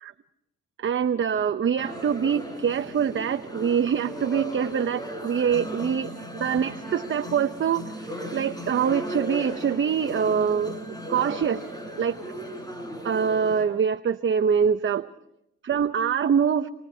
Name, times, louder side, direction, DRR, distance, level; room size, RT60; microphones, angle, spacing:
voice 1, 0.8-11.6 12.0-12.2 13.0-15.1 15.6-16.7, right 7 dB, 40° right, 10 dB, 0.8 m, -24 dB
sound 1, 1.8-13.7, equal, 15° left, 6.7 m, -36 dB
27.5 x 22.5 x 4.5 m, 0.79 s
cardioid pair, 90°, 30 cm